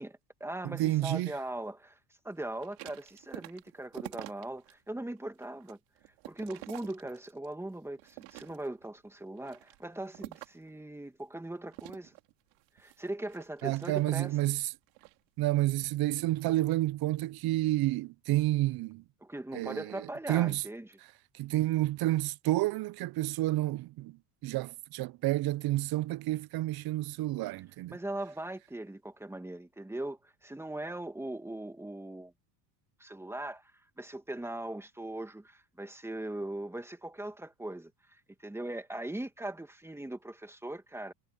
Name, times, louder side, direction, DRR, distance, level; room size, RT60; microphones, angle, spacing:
voice 1, 0.0-2.0 2.2-5.8 6.3-12.1 12.8-14.4 19.2-20.9 27.9-32.3 33.0-33.7 34.0-41.1, right 1 dB, 5° right, 2.4 m, -40 dB
voice 2, 0.6-1.3 13.6-14.6 15.4-19.0 19.5-19.8 20.3-20.6 21.4-24.2 24.4-27.9, right 16 dB, 50° right, 0.8 m, -29 dB
sound 1, 2.5-4.7 5.2-7.5 8.0-8.9 9.4-10.7 11.7-14.4 14.9-15.2, right 26 dB, 80° right, 3.2 m, -48 dB
supercardioid pair, 105°, 48 cm